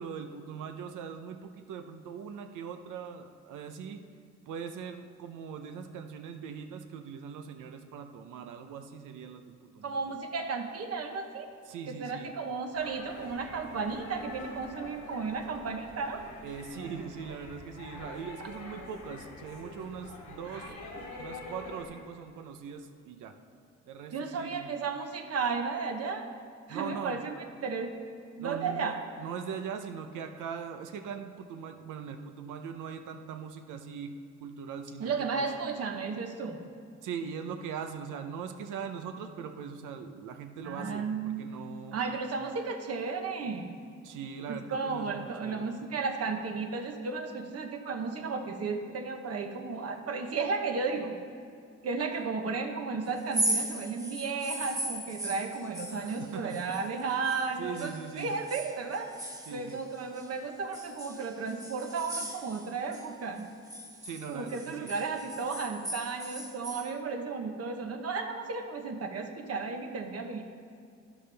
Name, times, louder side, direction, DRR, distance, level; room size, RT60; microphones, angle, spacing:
voice 1, 0.0-4.0 4.5-10.0 11.7-12.3 16.4-20.7 21.2-23.3 23.8-24.7 26.7-27.2 28.4-35.4 37.0-42.1 44.0-45.7 55.9-56.6 57.6-58.3 59.5-59.8 64.0-64.9, right 6 dB, 85° right, 6 dB, 0.7 m, -41 dB
voice 2, 9.8-11.5 11.9-16.2 18.4-18.5 20.5-20.8 24.1-26.3 26.7-27.4 27.6-27.9 28.4-29.0 35.0-36.6 40.6-41.4 41.9-43.7 44.5-51.2 51.8-59.1 59.5-63.5 64.3-70.4, right 4 dB, 55° right, 4 dB, 1.0 m, -34 dB
sound 1, 12.7-21.8, left 2 dB, 85° left, 2.4 m, -46 dB
sound 2, 53.2-57.5 57.8-60.3 60.7-63.1 63.4-66.9, right 1 dB, 10° right, 1.3 m, -37 dB
12.0 x 10.0 x 3.4 m, 2.4 s
cardioid pair, 90°, 30 cm